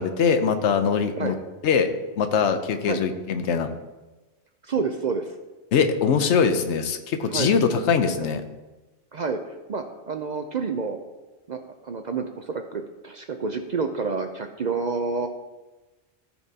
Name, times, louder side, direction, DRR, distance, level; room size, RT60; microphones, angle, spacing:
voice 1, 0.0-1.4 1.6-1.9 2.2-3.7 5.7-8.4, left 6 dB, 70° left, 8 dB, 1.0 m, -22 dB
voice 2, 4.6-5.3 7.3-7.6 8.1-8.3 9.1-11.0 11.5-15.3, right 4 dB, 55° right, 6 dB, 0.5 m, -29 dB
14.0 x 5.9 x 2.8 m, 1.1 s
omnidirectional pair, 1.2 m